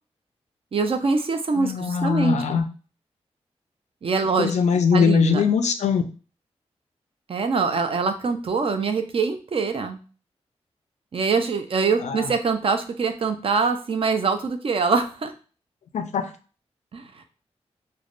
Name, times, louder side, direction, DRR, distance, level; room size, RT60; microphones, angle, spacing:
voice 1, 0.7-2.6 4.0-4.5 4.9-5.4 7.3-10.0 11.1-15.3 16.9-17.0, right 4 dB, 55° right, 7 dB, 0.5 m, -24 dB
voice 2, 1.5-2.7 4.4-6.0 12.0-12.3 15.9-16.3, left 6 dB, 85° left, 8 dB, 0.4 m, -21 dB
3.3 x 2.1 x 2.4 m, 0.36 s
cardioid pair, 75°, 11 cm